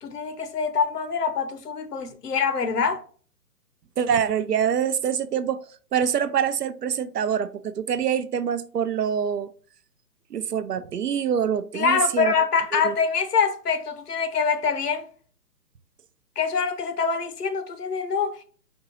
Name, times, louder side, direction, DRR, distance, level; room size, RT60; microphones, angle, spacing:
voice 1, 0.0-3.0 11.7-15.1 16.4-18.4, left 5 dB, 70° left, 0.9 m, -25 dB
voice 2, 4.0-5.6 5.9-9.5 10.3-12.3 12.7-13.0, right 8 dB, 75° right, 0.6 m, -25 dB
4.4 x 2.8 x 4.2 m
figure-of-eight pair, 130°, 48 cm